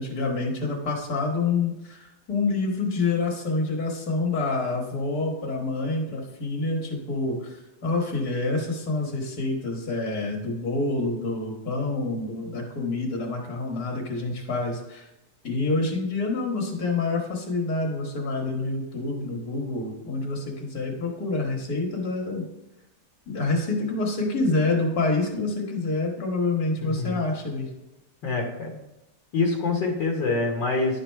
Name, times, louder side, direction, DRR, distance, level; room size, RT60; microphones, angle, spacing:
voice 1, 0.0-15.1 15.4-22.4 23.3-27.7, left 3 dB, 55° left, 1 dB, 1.9 m, -27 dB
voice 2, 26.8-27.2 28.2-28.7 29.3-31.0, left 3 dB, 80° left, -1 dB, 1.9 m, -25 dB
11.0 x 4.0 x 4.5 m, 0.92 s
omnidirectional pair, 1.9 m